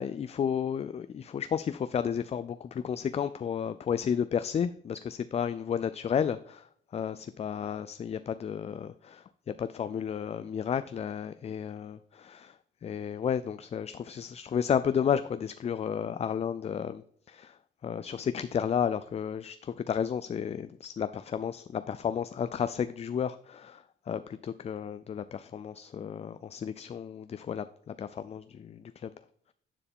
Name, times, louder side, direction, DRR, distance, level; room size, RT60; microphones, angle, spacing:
voice 1, 0.0-6.7 6.9-12.5 12.8-17.0 17.3-17.6 17.8-29.1, left 8 dB, 30° left, 13 dB, 0.3 m, -32 dB
9.8 x 4.7 x 3.6 m, 0.64 s
cardioid pair, 90°, 20 cm